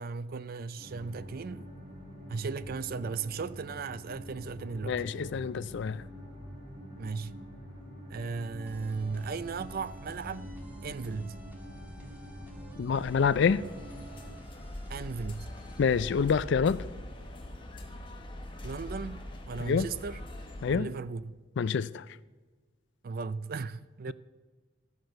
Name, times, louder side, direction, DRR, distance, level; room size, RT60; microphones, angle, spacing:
voice 1, 0.0-1.7 2.3-5.0 7.0-7.3 8.1-10.5 10.8-11.4 14.9-15.5 18.6-20.2 20.7-21.4 23.0-24.1, right 4 dB, 50° right, 0.4 m, -36 dB
sound 1, 0.8-14.3, equal, 30° right, 2.8 m, -46 dB
voice 2, 4.8-6.0 12.8-13.6 15.8-16.8 19.6-19.9 20.6-20.9 21.6-22.0, left 6 dB, 65° left, 0.4 m, -27 dB
sound 2, 8.7-16.3, equal, 10° right, 1.7 m, -50 dB
sound 3, 13.0-20.7, left 1 dB, 25° left, 1.1 m, -43 dB
13.0 x 6.0 x 6.5 m
head